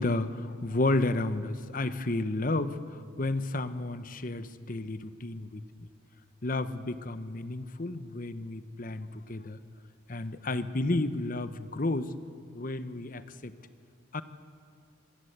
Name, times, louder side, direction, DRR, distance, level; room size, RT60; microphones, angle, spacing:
voice 1, 0.0-5.9 6.4-9.6 10.1-12.1 12.5-13.5 14.1-14.2, left 2 dB, 40° left, 12 dB, 0.9 m, -32 dB
25.5 x 16.5 x 8.1 m, 2.2 s
head